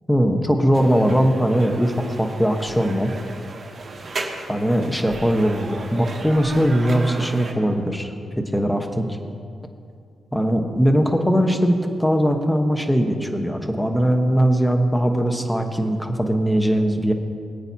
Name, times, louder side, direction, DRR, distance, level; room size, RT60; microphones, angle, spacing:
voice 1, 0.1-3.1 4.5-9.1 10.3-17.1, equal, 5° left, 5 dB, 1.1 m, -20 dB
sound 1, 0.7-7.5, right 3 dB, 50° right, 1.5 m, -35 dB
22.0 x 8.8 x 2.8 m, 2.4 s
cardioid pair, 85°, 0 cm